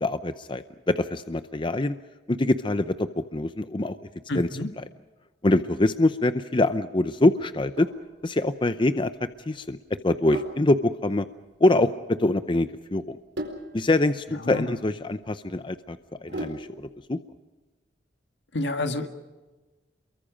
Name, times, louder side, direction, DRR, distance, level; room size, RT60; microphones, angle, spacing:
voice 1, 0.0-2.0 2.3-3.9 4.3-4.5 5.4-7.9 8.2-9.1 9.5-9.8 10.0-11.3 11.6-13.2 13.7-16.7 17.1-17.2, left 2 dB, 30° left, 11 dB, 0.6 m, -24 dB
voice 2, 4.3-4.7 14.4-14.7 18.5-19.1, left 2 dB, 75° left, 7 dB, 1.9 m, -29 dB
Sink (filling or washing), 7.5-16.9, right 1 dB, 75° right, 4.3 m, -41 dB
29.0 x 23.0 x 5.2 m, 1.2 s
head